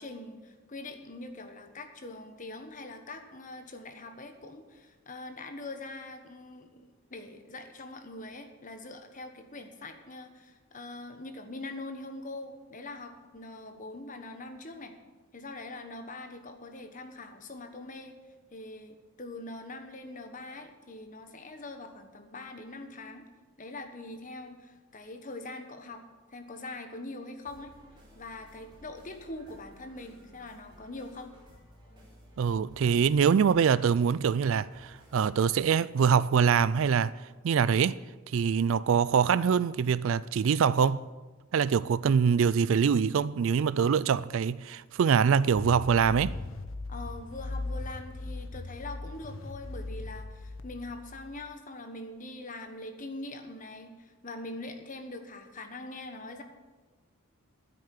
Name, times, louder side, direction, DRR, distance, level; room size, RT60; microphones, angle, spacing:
voice 1, 0.0-6.8 7.1-14.9 15.3-18.2 18.5-23.3 23.6-26.0 26.3-27.7 28.1-31.3 46.9-56.4, left 2 dB, 35° left, 1.3 m, -43 dB
sound 1, 27.5-35.5, equal, 20° right, 4.1 m, -56 dB
voice 2, 32.4-37.1 37.4-38.0 38.3-41.1 41.5-46.3, right 6 dB, 65° right, 0.3 m, -24 dB
sound 2, 45.6-51.4, left 2 dB, 65° left, 0.9 m, -39 dB
9.9 x 8.3 x 9.6 m
head